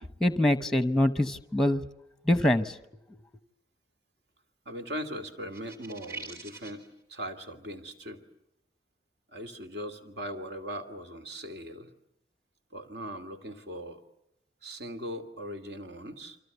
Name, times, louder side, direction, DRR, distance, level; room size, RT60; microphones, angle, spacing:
voice 1, 0.2-1.8 2.3-2.7, left 1 dB, 5° left, 0.9 m, -24 dB
voice 2, 4.7-6.8 7.1-8.2 9.3-11.9 12.7-14.0 14.6-16.4, equal, 65° right, 2.7 m, -39 dB
sound 1, 5.5-6.9, right 3 dB, 20° right, 4.3 m, -43 dB
29.0 x 25.0 x 6.9 m
head